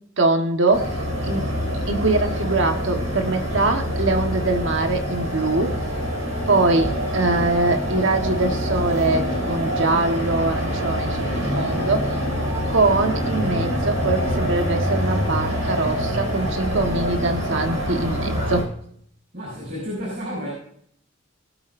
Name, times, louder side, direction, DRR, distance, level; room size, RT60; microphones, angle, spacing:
voice 1, 0.2-1.0 1.2-1.5 1.9-5.8 6.5-12.2 12.7-18.7, right 2 dB, 65° right, 1.4 m, -23 dB
sound 1, 0.7-18.6, equal, 80° right, 4.0 m, -25 dB
voice 2, 19.3-20.5, equal, 45° right, 5.6 m, -31 dB
19.0 x 8.8 x 2.6 m
head